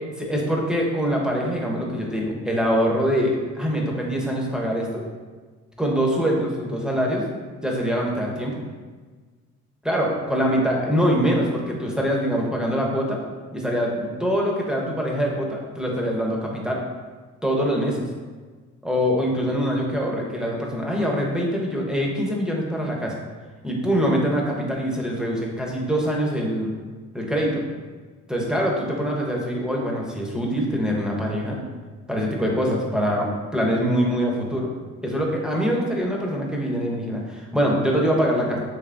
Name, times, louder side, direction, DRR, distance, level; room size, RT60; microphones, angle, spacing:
voice 1, 0.3-5.1 5.8-7.2 7.6-8.6 9.8-13.2 13.5-16.8 17.4-18.1 18.8-23.2 23.6-26.7 27.1-27.6 28.3-31.6 32.1-34.7 35.0-38.6, equal, ahead, -1 dB, 0.6 m, -24 dB
3.4 x 3.1 x 2.4 m, 1.4 s
cardioid pair, 90°, 30 cm